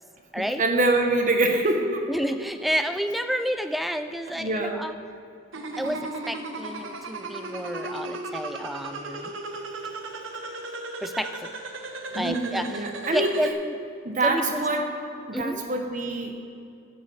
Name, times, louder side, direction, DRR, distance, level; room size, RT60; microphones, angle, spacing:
voice 1, 0.4-2.1 4.3-4.8 5.8-6.0 12.1-13.6 14.0-14.9 15.3-16.4, right 2 dB, 40° right, 4 dB, 1.0 m, -25 dB
voice 2, 2.1-5.0 5.8-9.3 11.0-11.5 12.1-13.8 14.2-14.6 15.3-15.6, equal, ahead, 9 dB, 0.3 m, -30 dB
sound 1, 5.5-13.5, right 2 dB, 75° right, 0.8 m, -36 dB
10.5 x 6.1 x 7.2 m, 2.5 s
head